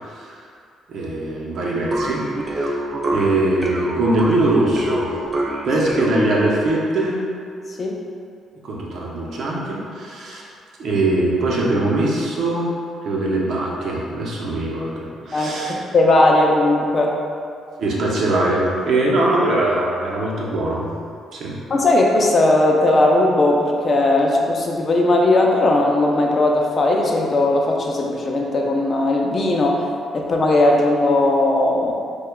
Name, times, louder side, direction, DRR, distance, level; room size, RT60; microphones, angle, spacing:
voice 1, 0.9-2.8 3.1-5.2 5.6-7.2 8.6-10.5 10.8-12.7 13.0-15.7 17.8-20.9 21.3-21.6, right 2 dB, 65° right, -4 dB, 0.8 m, -21 dB
sound 1, 1.9-6.7, right 1 dB, 35° right, 0.5 m, -26 dB
voice 2, 15.3-17.2 21.7-29.9 30.1-31.9, left 2 dB, 40° left, 0 dB, 0.5 m, -18 dB
6.5 x 2.3 x 2.3 m, 2.3 s
cardioid pair, 90°, 0 cm